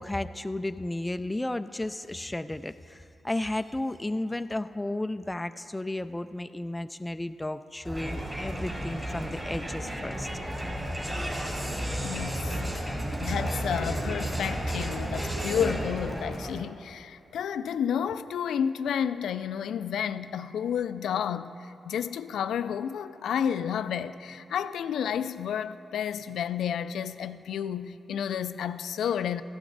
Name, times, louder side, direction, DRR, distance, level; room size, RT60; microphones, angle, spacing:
voice 1, 0.0-10.3, left 1 dB, 15° left, 0.3 m, -33 dB
Crowd, 7.8-16.7, right 1 dB, 25° right, 2.9 m, -32 dB
voice 2, 12.0-12.9 13.2-29.4, left 8 dB, 90° left, 0.4 m, -31 dB
15.0 x 11.5 x 4.0 m
cardioid pair, 80°, 0 cm